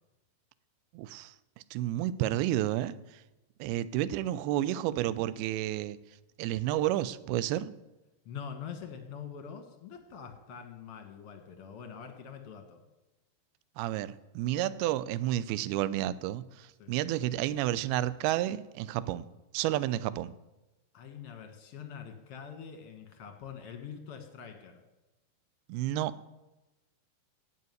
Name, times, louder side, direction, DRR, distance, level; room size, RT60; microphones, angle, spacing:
voice 1, 0.9-1.3 1.7-3.0 3.6-6.0 6.4-7.7 13.8-19.2 19.5-20.3 25.7-26.1, right 13 dB, 80° right, 16 dB, 2.4 m, -31 dB
voice 2, 8.2-12.8 16.8-16.9 20.9-24.8, left 7 dB, 60° left, 5 dB, 1.5 m, -44 dB
16.5 x 5.7 x 9.5 m, 1.0 s
omnidirectional pair, 4.8 m